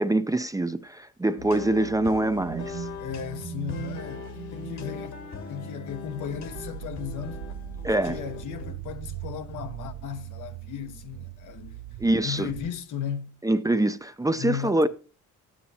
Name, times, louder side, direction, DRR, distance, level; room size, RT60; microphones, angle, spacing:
voice 1, 0.0-2.9 7.8-8.2 12.0-12.5 13.4-14.9, right 1 dB, 10° right, 0.5 m, -24 dB
sound 1, 1.4-8.7, left 5 dB, 60° left, 1.6 m, -40 dB
sound 2, 2.4-5.1 5.5-5.8 6.2-12.7, right 12 dB, 60° right, 0.5 m, -40 dB
voice 2, 3.0-5.2 5.5-7.4 8.0-11.8 12.2-13.4 14.3-14.9, left 8 dB, 80° left, 1.1 m, -35 dB
12.0 x 8.7 x 2.8 m
cardioid pair, 90°, 30 cm